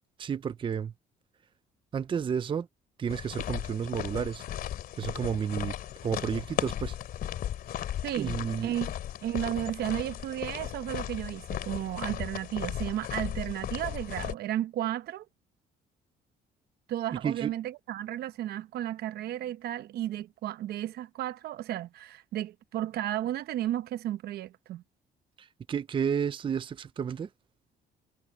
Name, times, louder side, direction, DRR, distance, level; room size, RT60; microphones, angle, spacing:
voice 1, 0.2-0.9 1.9-2.7 3.0-4.4 4.9-5.8 6.0-7.0 8.2-8.7 17.2-17.5 25.4-27.3, right 7 dB, 30° right, 0.6 m, -31 dB
sound 1, 3.1-14.3, left 11 dB, 65° left, 2.7 m, -36 dB
voice 2, 8.0-8.9 9.2-15.2 16.9-24.8, right 12 dB, 70° right, 0.9 m, -33 dB
cardioid pair, 110°, 17 cm